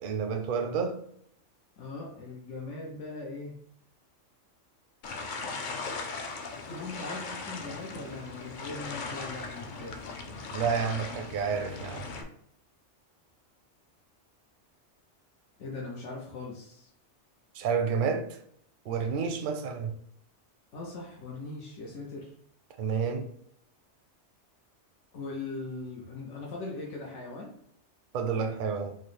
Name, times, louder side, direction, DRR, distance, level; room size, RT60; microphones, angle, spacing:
voice 1, 0.0-1.0 10.5-12.1 17.5-18.4 18.9-19.9 22.8-23.3 28.1-29.0, right 6 dB, 60° right, 0.5 m, -30 dB
voice 2, 1.8-3.6 6.7-10.0 15.6-16.9 20.7-22.3 25.1-27.5, left 3 dB, 85° left, 1.1 m, -40 dB
sound 1, 5.0-12.2, left 4 dB, 55° left, 0.5 m, -38 dB
4.7 x 2.1 x 3.1 m
omnidirectional pair, 1.2 m